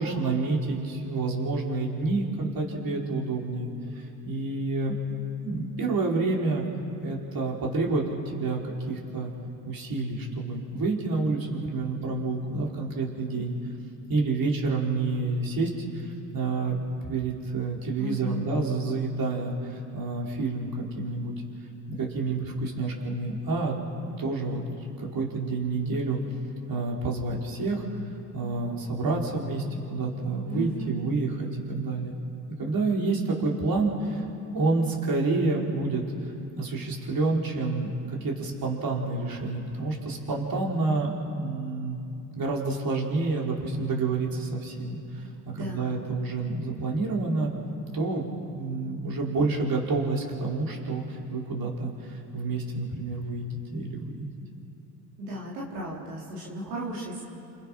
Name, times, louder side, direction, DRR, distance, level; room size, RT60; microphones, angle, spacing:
voice 1, 0.0-5.0 5.4-6.6 7.0-8.6 8.9-9.3 9.6-13.5 14.1-16.8 17.0-21.3 21.9-23.8 24.2-24.6 25.0-26.2 26.7-27.8 28.3-32.1 32.6-34.2 34.5-41.9 42.3-45.3 45.5-47.5 47.9-48.3 48.5-54.3, right 3 dB, 45° right, -2 dB, 5.1 m, -29 dB
voice 2, 18.0-18.6 30.5-31.1 45.5-46.0 55.2-57.2, right 1 dB, 90° right, -5 dB, 4.2 m, -35 dB
28.5 x 28.5 x 6.0 m, 2.8 s
hypercardioid pair, 55°, 47 cm